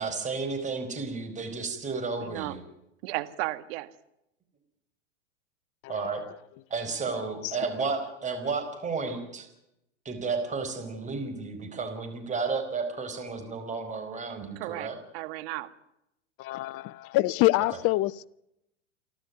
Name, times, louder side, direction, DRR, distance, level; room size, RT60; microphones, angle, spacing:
voice 1, 0.0-2.6 5.9-6.2 6.7-9.5 10.0-15.0, right 4 dB, 20° right, 4.7 m, -32 dB
voice 2, 2.2-2.6 3.0-3.9 14.6-15.7, right 18 dB, 55° right, 2.0 m, -34 dB
voice 3, 7.2-7.6 16.4-18.3, left 18 dB, 40° left, 0.8 m, -26 dB
29.5 x 12.5 x 9.5 m
hypercardioid pair, 115°, 36 cm